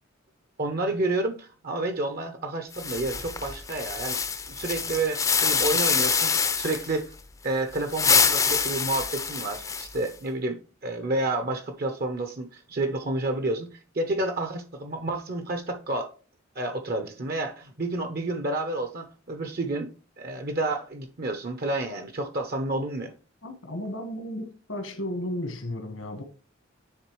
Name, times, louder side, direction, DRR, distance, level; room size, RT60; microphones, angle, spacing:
voice 1, 0.6-4.2 4.5-7.0 7.4-13.7 13.9-16.1 16.6-19.9 20.2-23.1, right 2 dB, 50° right, 0.8 m, -30 dB
sound 1, 2.7-6.9 7.8-10.1, left 5 dB, 15° left, 0.5 m, -25 dB
voice 2, 23.4-26.2, left 1 dB, 80° left, 1.5 m, -34 dB
10.0 x 3.7 x 3.1 m
head